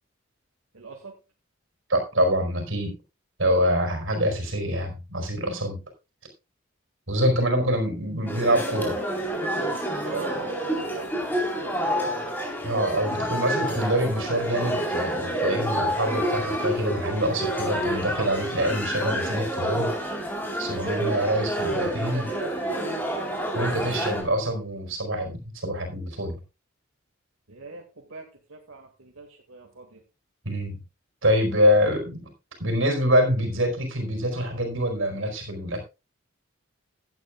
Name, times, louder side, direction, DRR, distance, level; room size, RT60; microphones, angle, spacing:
voice 1, 0.7-1.1 10.0-12.3 20.7-23.0 27.5-30.0, right 4 dB, 85° right, 1 dB, 2.2 m, -41 dB
voice 2, 1.9-3.0 3.4-5.8 7.1-9.0 12.6-19.9 20.6-22.3 23.5-26.4 30.4-30.8 31.2-32.3 32.6-35.8, equal, 70° right, 5 dB, 4.7 m, -25 dB
sound 1, 8.3-24.2, right 1 dB, 10° left, 4.1 m, -28 dB
16.5 x 11.0 x 2.4 m, 0.28 s
head